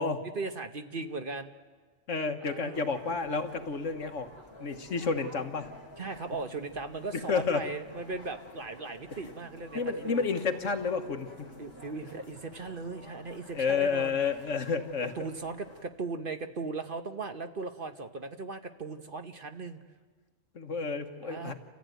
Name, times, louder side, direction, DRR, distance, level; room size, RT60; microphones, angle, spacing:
voice 1, 0.3-1.5 2.4-2.8 6.0-10.2 11.6-14.2 15.1-19.8 21.2-21.5, right 3 dB, 45° right, 7 dB, 1.1 m, -38 dB
voice 2, 2.1-4.3 4.6-5.7 7.3-7.6 9.7-11.5 13.5-15.1 20.5-21.5, left 5 dB, 70° left, 6 dB, 1.7 m, -30 dB
sound 1, 2.7-15.8, left 1 dB, 20° left, 3.2 m, -51 dB
28.5 x 14.5 x 9.3 m, 1.4 s
omnidirectional pair, 1.3 m